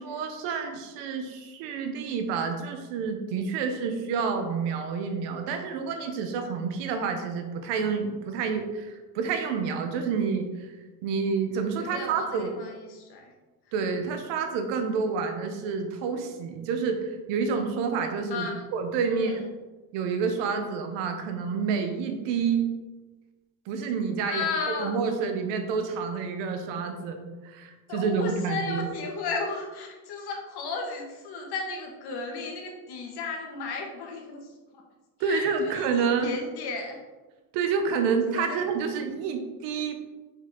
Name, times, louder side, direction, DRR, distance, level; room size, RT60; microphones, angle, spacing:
voice 1, 0.0-10.7 11.0-12.6 13.7-19.4 19.9-22.7 23.7-24.5 24.8-28.9 35.2-36.3 37.5-40.0, right 5 dB, 80° right, 5 dB, 1.2 m, -29 dB
voice 2, 11.8-13.3 18.3-18.6 19.1-19.4 24.2-24.9 27.9-34.8 35.2-37.0 38.3-38.6, left 4 dB, 65° left, 1 dB, 1.9 m, -34 dB
6.3 x 5.7 x 3.9 m, 1.2 s
supercardioid pair, 85°, 42 cm